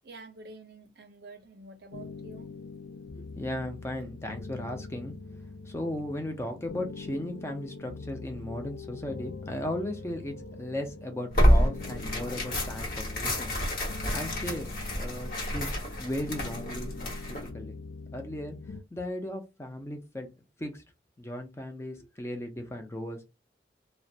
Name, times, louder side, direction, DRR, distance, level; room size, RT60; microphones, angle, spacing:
voice 1, 0.0-2.5, right 2 dB, 65° right, 0.5 m, -48 dB
sound 1, 1.9-18.8, left 3 dB, 80° left, 0.3 m, -43 dB
voice 2, 3.1-5.1 5.7-13.5 14.1-17.7 18.1-18.6 18.9-20.3 20.6-20.8 21.2-23.2, left 1 dB, 15° left, 0.4 m, -36 dB
Tearing, 11.3-17.5, equal, 50° left, 1.0 m, -28 dB
2.3 x 2.1 x 2.6 m
head